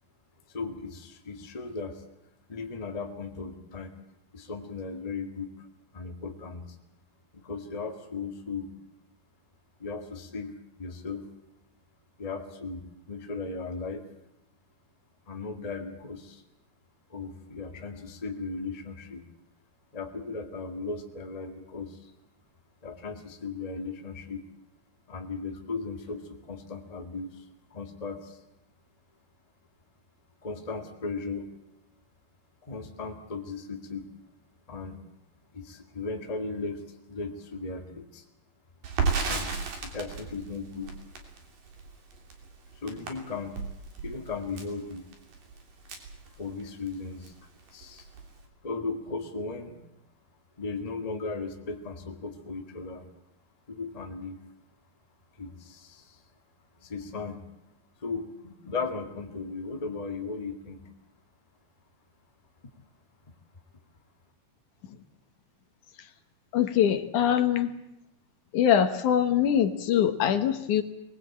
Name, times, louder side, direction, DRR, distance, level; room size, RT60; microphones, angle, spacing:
voice 1, 0.5-2.0 2.5-4.0 4.3-5.7 5.9-6.7 7.3-8.7 9.8-11.3 12.2-14.0 15.3-16.4 17.1-19.2 19.9-22.1 22.8-24.4 25.1-28.4 30.4-31.5 32.6-34.1 34.7-35.0 35.5-38.2 39.3-40.9 42.7-43.6 44.0-45.1 46.4-48.1 48.6-49.8 50.6-53.0 53.7-54.4 55.4-56.2 56.8-57.4 58.0-60.9, left 4 dB, 15° left, 3 dB, 1.4 m, -37 dB
Crackle, 38.8-46.9 47.2-47.4 47.7-48.4, right 5 dB, 80° right, 4.9 m, -34 dB
voice 2, 66.5-67.7 68.5-70.8, left 9 dB, 70° left, 8 dB, 2.7 m, -23 dB
24.0 x 20.0 x 8.6 m, 0.84 s
omnidirectional pair, 3.8 m